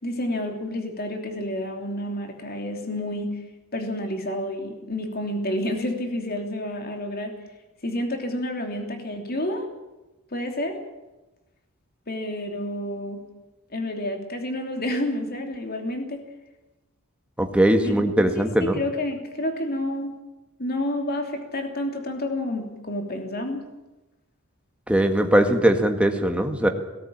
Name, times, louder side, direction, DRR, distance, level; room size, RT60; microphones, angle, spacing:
voice 1, 0.0-3.4 3.7-7.4 7.8-9.7 10.3-10.8 12.1-13.2 13.7-16.2 17.8-18.2 18.6-20.1 20.6-23.7, left 1 dB, 45° left, 4 dB, 3.0 m, -29 dB
voice 2, 17.4-18.8 24.9-26.7, right 1 dB, 5° right, 5 dB, 1.8 m, -20 dB
18.0 x 17.5 x 8.8 m, 1.0 s
head